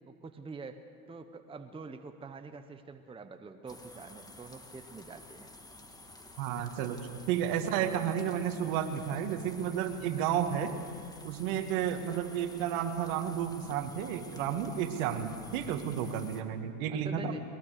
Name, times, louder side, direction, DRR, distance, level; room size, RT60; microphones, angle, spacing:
voice 1, 0.0-5.5 16.9-17.4, right 4 dB, 10° right, 8 dB, 0.9 m, -46 dB
sound 1, 3.7-16.4, left 2 dB, 10° left, 1.7 m, -51 dB
voice 2, 6.4-7.0 7.3-10.7 11.2-17.3, right 9 dB, 60° right, 7 dB, 2.1 m, -32 dB
22.0 x 21.5 x 6.7 m, 2.3 s
hypercardioid pair, 100°, 46 cm